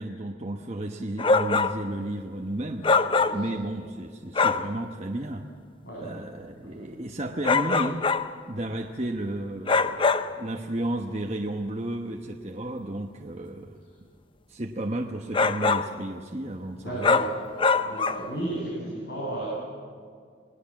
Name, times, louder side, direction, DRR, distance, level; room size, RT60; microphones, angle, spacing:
voice 1, 0.0-2.9 3.3-5.4 6.0-8.0 8.5-10.0 10.4-13.8 14.5-17.2, right 1 dB, 35° right, 1 dB, 1.1 m, -33 dB
sound 1, 1.2-1.8 2.8-3.6 4.4-4.7 7.4-8.3 9.7-10.4 15.3-16.0 17.0-18.3, left 4 dB, 25° left, 0.6 m, -23 dB
voice 2, 16.8-17.3 17.8-19.5, right 1 dB, 60° left, -5 dB, 7.8 m, -34 dB
28.5 x 19.0 x 7.5 m, 2.1 s
head